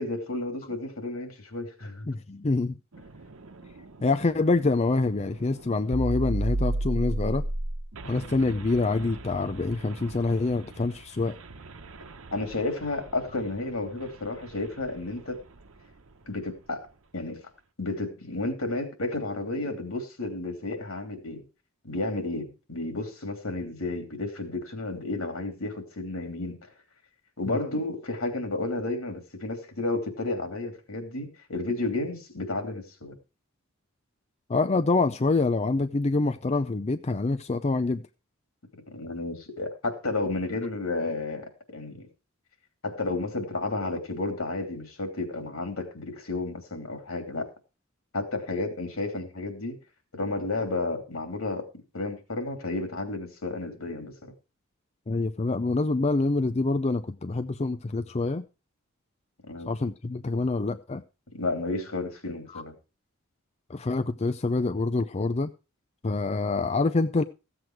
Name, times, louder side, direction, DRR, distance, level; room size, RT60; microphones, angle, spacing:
voice 1, 0.0-2.1 12.3-15.4 16.3-16.9 17.1-17.4 17.8-21.4 21.8-26.6 27.4-33.1 38.9-42.1 42.8-47.5 48.1-49.8 50.1-51.7 51.9-54.3 59.5-59.7 61.3-62.7, left 2 dB, 80° left, 5 dB, 3.1 m, -32 dB
voice 2, 2.1-2.7 4.0-7.4 8.0-11.4 27.4-27.6 34.5-38.0 55.1-58.4 59.7-61.0 62.5-62.6 63.7-65.5 66.0-67.2, left 3 dB, 30° left, 9 dB, 0.5 m, -26 dB
sound 1, 2.9-15.7, right 1 dB, 75° right, 1.0 m, -35 dB
15.0 x 7.9 x 4.7 m, 0.31 s
head